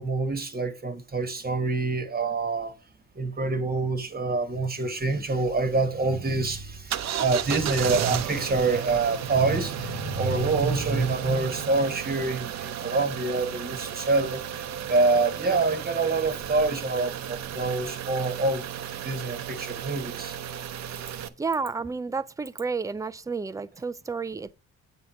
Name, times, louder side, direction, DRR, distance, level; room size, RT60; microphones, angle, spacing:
voice 1, 0.0-2.7 3.1-18.6 19.0-20.3, right 3 dB, 30° right, 1.3 m, -26 dB
sound 1, 6.9-21.3, right 9 dB, 60° right, 0.7 m, -34 dB
voice 2, 21.4-24.5, right 4 dB, 10° right, 0.4 m, -31 dB
7.8 x 3.5 x 5.7 m
cardioid pair, 90°, 30 cm